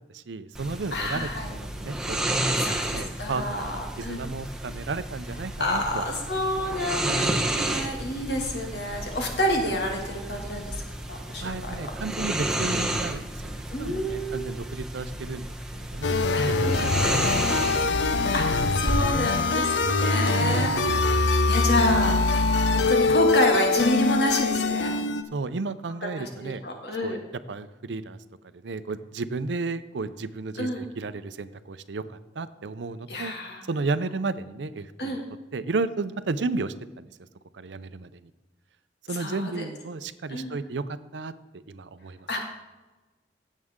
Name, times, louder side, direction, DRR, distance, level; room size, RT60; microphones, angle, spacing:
voice 1, 0.1-2.2 2.5-6.4 11.4-16.2 16.4-17.2 17.5-17.6 20.5-20.9 25.3-26.6 27.0-27.2 27.5-28.2 28.5-33.3 33.7-35.2 35.5-37.0 37.5-38.3 39.1-42.3, right 3 dB, 85° right, 13 dB, 0.6 m, -33 dB
sound 1, 0.5-19.0, right 1 dB, 5° right, 0.8 m, -31 dB
voice 2, 0.9-1.5 2.6-4.2 5.6-10.8 11.1-11.7 13.7-14.6 16.3-16.8 18.3-22.1 22.7-24.9 26.1-27.2 30.6-30.8 33.1-33.6 35.0-35.2 39.1-39.6 40.3-40.6 42.3-42.4, left 1 dB, 70° left, 1 dB, 2.2 m, -29 dB
sound 2, 16.0-25.2, left 3 dB, 85° left, 0.6 m, -23 dB
16.0 x 7.4 x 3.7 m, 1.1 s
head